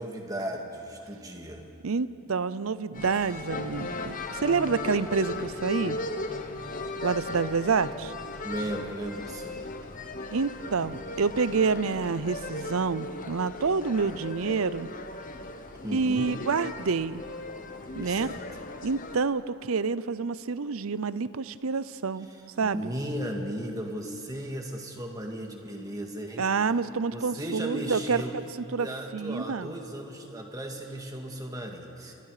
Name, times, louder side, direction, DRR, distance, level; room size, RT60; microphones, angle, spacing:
voice 1, 0.0-1.6 8.4-9.6 14.1-14.2 15.8-16.3 18.0-18.4 22.3-26.5 27.1-28.3 28.7-32.1, right 1 dB, 15° right, 2 dB, 2.0 m, -36 dB
voice 2, 1.8-6.0 7.0-8.1 10.3-14.9 15.9-17.2 17.9-18.3 18.8-22.3 22.6-22.9 26.4-28.2 28.7-28.9 29.1-29.7, right 5 dB, 75° right, 16 dB, 0.6 m, -28 dB
sound 1, 2.9-19.2, left 2 dB, 35° left, 1.1 m, -37 dB
29.0 x 24.0 x 5.0 m, 2.8 s
head